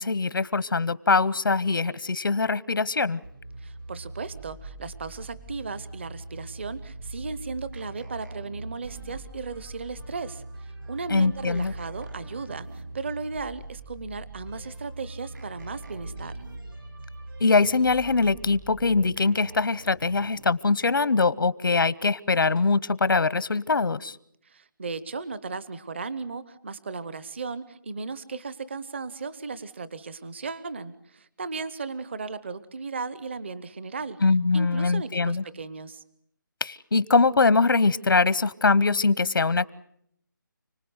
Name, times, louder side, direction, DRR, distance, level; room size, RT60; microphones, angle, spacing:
voice 1, 0.0-3.2 11.1-11.7 17.4-24.2 34.2-35.4 36.6-39.7, left 4 dB, 90° left, 19 dB, 0.9 m, -22 dB
sound 1, 3.2-20.5, right 2 dB, 85° right, 7.6 m, -42 dB
voice 2, 3.6-16.4 24.4-34.2 34.5-36.0, right 4 dB, 35° right, 16 dB, 0.9 m, -36 dB
sound 2, 7.7-9.5 11.5-13.2 15.3-16.9 19.2-20.8, right 2 dB, 60° right, 4.7 m, -49 dB
30.0 x 19.5 x 8.0 m, 0.73 s
hypercardioid pair, 175°, 11 cm